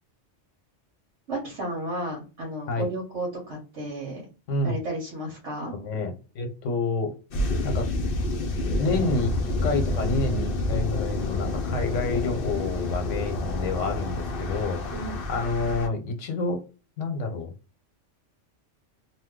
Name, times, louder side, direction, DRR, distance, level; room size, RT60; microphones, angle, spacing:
voice 1, 1.3-4.2 4.6-5.7 14.9-15.2, right 1 dB, 75° right, 1.3 m, -33 dB
voice 2, 4.5-4.8 5.7-7.2 7.6-7.9 8.7-9.3 9.6-16.6 17.0-17.5, left 3 dB, 80° left, 1.1 m, -29 dB
sound 1, 7.3-15.9, left 2 dB, 60° left, 0.7 m, -28 dB
2.8 x 2.1 x 3.5 m
omnidirectional pair, 1.3 m